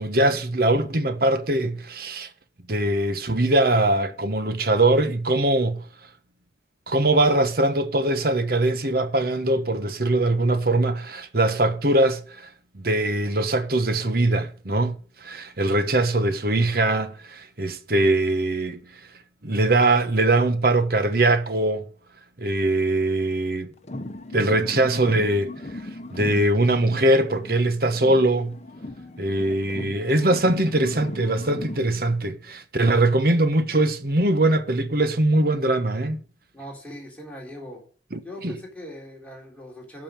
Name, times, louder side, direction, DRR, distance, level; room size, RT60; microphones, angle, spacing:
voice 1, 0.0-2.3 2.7-5.8 6.9-12.5 12.7-14.9 15.2-18.8 19.4-21.8 22.4-23.7 24.3-25.5 26.1-28.5 29.2-36.2 38.1-38.5, right 2 dB, 55° right, 1.2 m, -22 dB
sound 1, 23.8-27.7 27.9-31.9, left 1 dB, 40° left, 1.0 m, -38 dB
voice 2, 36.5-37.8 38.2-40.0, left 1 dB, 10° left, 3.8 m, -40 dB
12.5 x 5.5 x 7.5 m
head